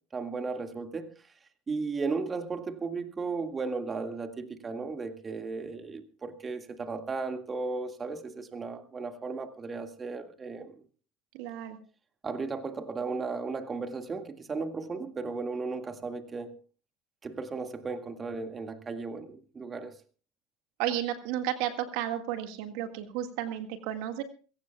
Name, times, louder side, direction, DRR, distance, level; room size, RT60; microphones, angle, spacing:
voice 1, 0.1-1.1 1.7-10.7 12.2-16.5 17.2-20.0, right 4 dB, 25° right, 1.9 m, -35 dB
voice 2, 11.3-11.8 20.8-24.2, right 11 dB, 70° right, 1.8 m, -33 dB
22.5 x 17.0 x 2.3 m
hypercardioid pair, 90°, 0 cm